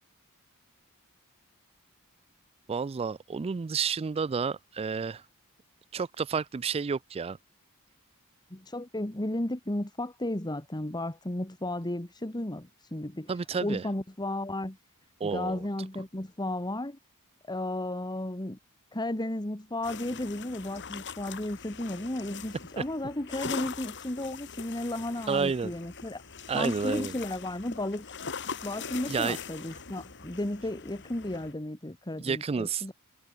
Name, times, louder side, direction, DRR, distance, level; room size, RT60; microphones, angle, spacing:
voice 1, 2.7-5.2 5.9-7.4 13.3-13.8 15.2-15.6 22.8-22.9 25.3-25.7 26.5-27.1 29.1-29.4 32.2-32.8, right 5 dB, 25° right, 0.3 m, -30 dB
voice 2, 8.5-14.8 15.2-17.0 17.5-18.6 18.9-26.2 26.5-28.1 28.6-32.9, left 1 dB, 20° left, 1.7 m, -34 dB
sound 1, 19.8-31.5, left 6 dB, 55° left, 2.9 m, -42 dB
head